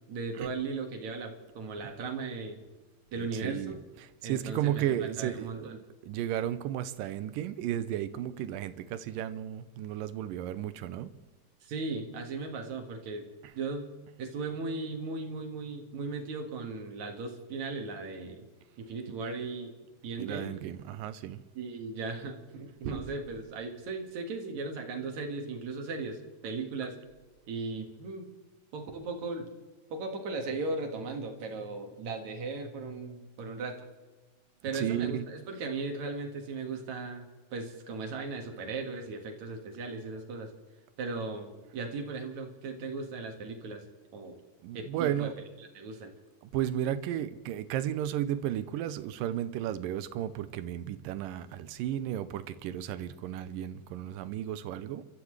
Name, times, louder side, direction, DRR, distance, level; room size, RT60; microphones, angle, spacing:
voice 1, 0.1-2.6 3.1-3.8 4.2-5.8 11.6-13.3 13.5-13.9 14.2-18.5 18.9-19.7 20.0-20.6 21.5-26.2 26.4-27.0 27.5-28.3 28.7-29.5 29.9-33.8 34.6-40.5 41.0-43.8 44.1-44.4 44.7-45.3 45.6-46.1, right 3 dB, 55° right, 2.9 m, -37 dB
voice 2, 3.2-3.8 4.2-5.7 6.0-11.1 20.2-21.4 22.9-23.0 34.7-35.2 44.6-45.4 46.5-55.1, right 11 dB, 80° right, 2.3 m, -33 dB
29.5 x 13.5 x 3.3 m
omnidirectional pair, 4.1 m